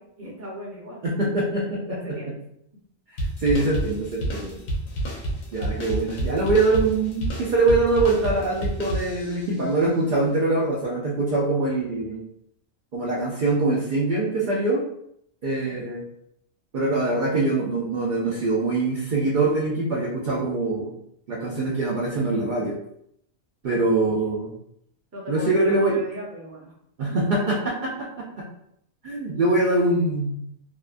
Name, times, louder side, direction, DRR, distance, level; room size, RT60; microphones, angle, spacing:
voice 1, 0.0-1.3 1.9-2.4 15.6-15.8 23.9-24.1 25.1-26.7 27.3-27.4, equal, 15° right, -5 dB, 0.5 m, -37 dB
voice 2, 1.0-1.8 3.4-4.6 5.5-12.2 12.9-14.8 15.4-16.0 16.7-20.9 21.3-22.8 23.6-24.5 25.3-26.0 27.0-28.3 29.0-30.4, right 2 dB, 65° right, -4 dB, 0.5 m, -23 dB
sound 1, 3.2-9.5, right 1 dB, 85° left, 1.1 m, -29 dB
2.7 x 2.2 x 2.4 m, 0.72 s
omnidirectional pair, 1.4 m